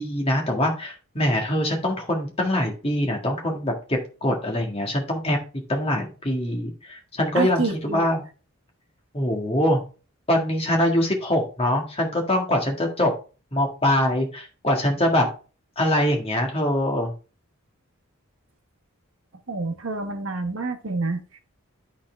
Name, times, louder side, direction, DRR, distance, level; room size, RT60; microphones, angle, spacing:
voice 1, 0.0-5.4 5.7-8.2 9.1-9.8 10.3-13.1 13.5-15.3 15.8-17.1, left 1 dB, 25° left, 1 dB, 1.8 m, -23 dB
voice 2, 7.3-8.1 19.5-21.4, right 3 dB, 70° right, 7 dB, 1.1 m, -28 dB
11.5 x 4.3 x 3.4 m, 0.35 s
head